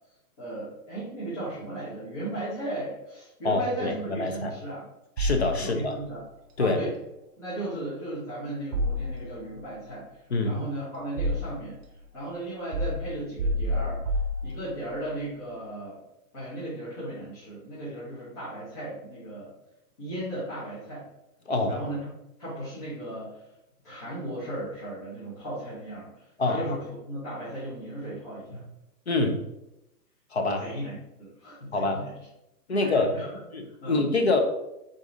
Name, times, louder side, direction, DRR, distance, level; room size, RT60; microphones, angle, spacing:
voice 1, 0.4-4.8 5.6-6.2 6.6-6.9 7.4-10.1 10.4-11.8 12.1-14.0 14.4-16.0 16.3-19.5 20.0-21.1 21.7-22.1 22.4-23.4 23.8-28.6 30.6-32.1 32.7-33.3 33.7-34.0, right 1 dB, 25° left, -11 dB, 1.0 m, -36 dB
voice 2, 3.4-4.6 5.2-5.9 6.6-6.8 10.3-10.6 21.5-21.8 26.4-26.6 28.5-28.6 29.1-29.4 30.3-30.7 31.7-32.1 32.7-33.2 33.5-34.4, left 2 dB, 45° left, 4 dB, 0.5 m, -26 dB
sound 1, 5.2-6.1 8.7-9.6 10.5-11.8 12.7-15.0, equal, 65° right, 0.7 m, -29 dB
4.9 x 3.7 x 2.6 m, 0.88 s
hypercardioid pair, 180°, 47 cm